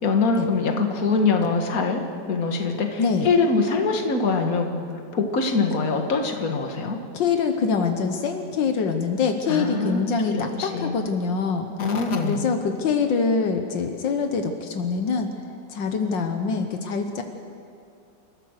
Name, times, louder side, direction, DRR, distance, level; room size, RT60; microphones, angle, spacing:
voice 1, 0.0-4.7 5.1-7.0 9.5-10.9 11.8-12.4, left 4 dB, 50° left, 4 dB, 2.1 m, -23 dB
voice 2, 7.1-11.7 12.2-15.3 15.7-17.2, left 5 dB, 80° left, 5 dB, 1.8 m, -24 dB
28.5 x 14.5 x 6.6 m, 2.5 s
omnidirectional pair, 2.0 m